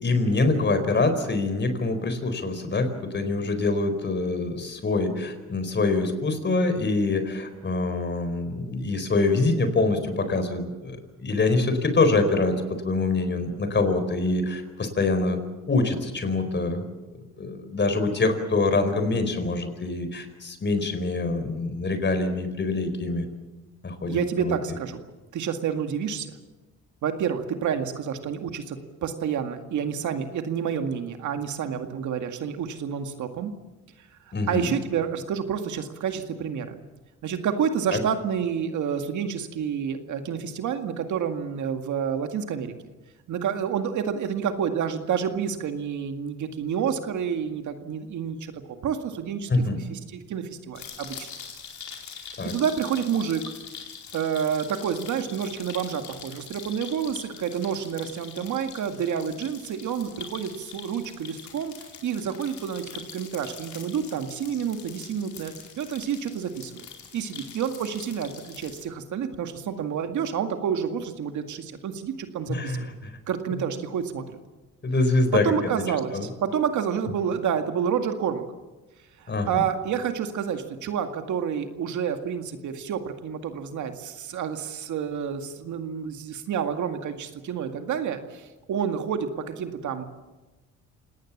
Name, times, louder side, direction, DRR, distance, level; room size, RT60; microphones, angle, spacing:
voice 1, 0.0-12.5 12.8-15.4 15.7-16.8 17.4-23.2 23.8-24.5 34.3-34.7 37.9-38.0 49.5-49.8 52.4-52.5 72.5-72.9 73.5-73.6 74.8-75.5 76.1-76.3 79.3-79.6, left 3 dB, 35° left, 9 dB, 4.4 m, -25 dB
voice 2, 24.1-25.0 25.3-26.3 27.0-33.5 34.5-36.8 37.2-42.7 43.3-48.5 48.8-51.3 52.4-53.4 54.1-61.7 62.0-66.9 67.1-72.9 73.3-74.4 75.3-78.4 79.2-90.0, right 7 dB, 75° right, 7 dB, 2.1 m, -29 dB
sound 1, 50.7-68.8, left 7 dB, 65° left, 4.7 m, -43 dB
27.5 x 18.5 x 7.3 m, 1.2 s
cardioid pair, 90°, 30 cm